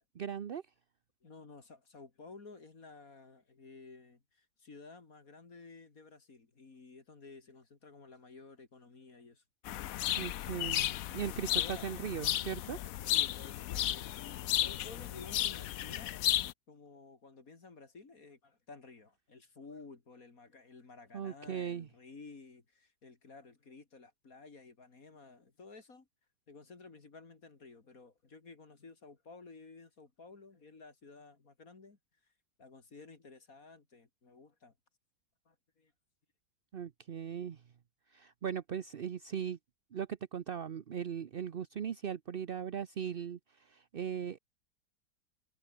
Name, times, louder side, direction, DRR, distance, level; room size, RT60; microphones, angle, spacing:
voice 1, 0.1-0.6 10.2-12.8 21.1-21.9 36.7-37.6 38.1-39.6 39.9-44.4, right 8 dB, 55° right, 0.6 m, -39 dB
voice 2, 1.2-9.4 11.6-11.9 13.0-16.1 16.7-26.1 26.5-32.3 32.6-34.7 35.5-35.9, left 4 dB, 50° left, 3.0 m, -54 dB
sound 1, 9.7-16.5, left 13 dB, 65° left, 0.9 m, -34 dB
omnidirectional pair, 1.9 m